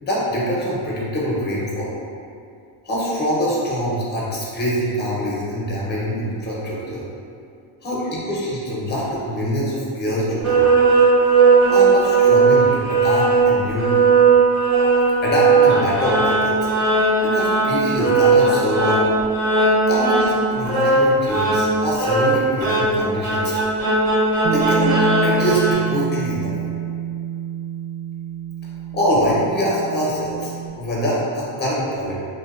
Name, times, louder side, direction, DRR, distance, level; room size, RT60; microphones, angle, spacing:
voice 1, 0.0-1.9 2.8-7.1 7.8-10.8 11.7-13.9 15.2-16.6 17.2-19.1 19.9-23.5 24.4-24.9 25.2-26.5 28.9-32.2, equal, 20° left, -5 dB, 0.6 m, -24 dB
sound 1, 10.4-25.7, right 4 dB, 85° right, 1.1 m, -17 dB
Bass guitar, 24.4-30.7, right 9 dB, 50° right, 0.6 m, -27 dB
2.7 x 2.2 x 2.3 m, 2.4 s
cardioid pair, 95°, 50 cm